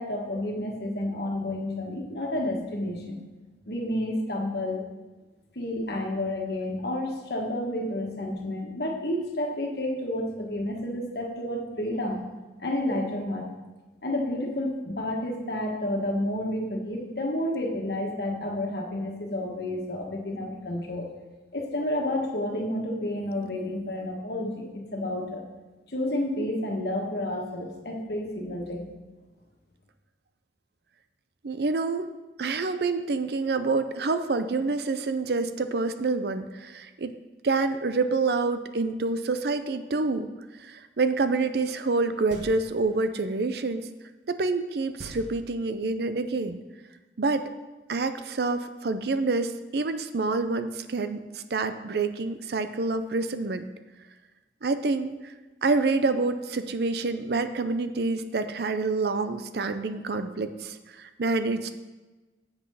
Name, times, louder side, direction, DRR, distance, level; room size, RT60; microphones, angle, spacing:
voice 1, 0.0-3.2 3.7-4.9 5.5-12.2 12.6-13.5 14.0-21.1 21.5-25.5 25.9-28.9, left 1 dB, 60° left, 0 dB, 1.5 m, -30 dB
voice 2, 31.4-32.1 32.4-37.2 37.4-40.3 40.6-43.9 44.3-46.6 47.2-47.5 47.9-53.7 54.6-55.3 55.6-61.8, right 3 dB, 60° right, 10 dB, 0.5 m, -27 dB
sound 1, 42.3-42.9 45.0-46.0, right 1 dB, 85° right, 1.2 m, -44 dB
7.9 x 6.2 x 5.6 m, 1.2 s
head